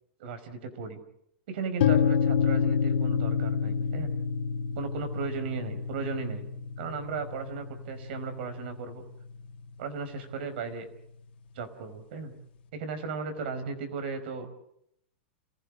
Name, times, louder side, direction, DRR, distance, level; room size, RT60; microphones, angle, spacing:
voice 1, 0.2-1.0 1.5-4.1 4.7-6.5 6.8-9.0 9.8-10.9 11.5-12.3 12.7-14.5, right 5 dB, 65° right, 9 dB, 4.9 m, -36 dB
sound 1, 1.8-9.7, left 6 dB, 65° left, 2.4 m, -29 dB
29.0 x 15.5 x 8.8 m, 0.78 s
supercardioid pair, 140°, 6 cm